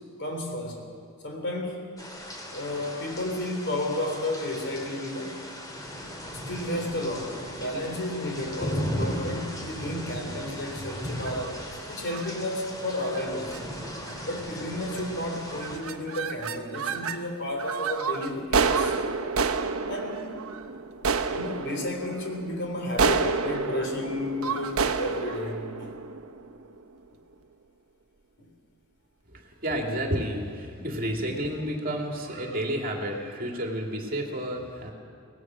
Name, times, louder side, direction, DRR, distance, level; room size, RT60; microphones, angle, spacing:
voice 1, 0.2-0.9 1.2-1.9 2.5-5.4 6.3-11.6 11.9-13.6 14.2-19.2 19.9-20.3 21.2-25.9 28.4-28.5, left 1 dB, 50° left, 3 dB, 3.6 m, -32 dB
sound 1, 2.0-15.8, equal, 15° left, 2.7 m, -37 dB
sound 2, 11.1-11.5 12.1-12.3 13.0-13.2 13.5-13.6 13.9-14.3 14.9-15.2 15.5-17.2 17.6-26.8, right 5 dB, 70° right, 0.9 m, -29 dB
voice 2, 29.3-34.9, equal, 40° right, 1 dB, 2.5 m, -31 dB
24.0 x 18.0 x 6.2 m, 2.5 s
head